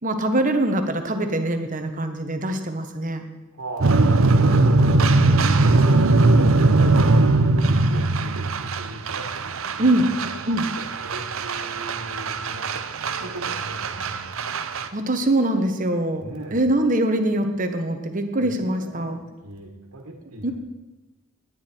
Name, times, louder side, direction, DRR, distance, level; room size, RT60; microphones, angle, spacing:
voice 1, 0.0-3.2 9.8-10.1 10.5-10.7 14.9-19.2 20.4-20.5, right 1 dB, 40° right, 6 dB, 1.3 m, -23 dB
voice 2, 3.5-5.1 5.5-7.5 7.8-9.3 9.8-14.4 16.2-16.6 18.4-19.2 19.4-20.5, right 1 dB, 90° right, 1 dB, 1.8 m, -38 dB
sound 1, 3.8-14.9, right 2 dB, 65° right, 0.7 m, -20 dB
18.5 x 9.7 x 4.5 m, 1.1 s
head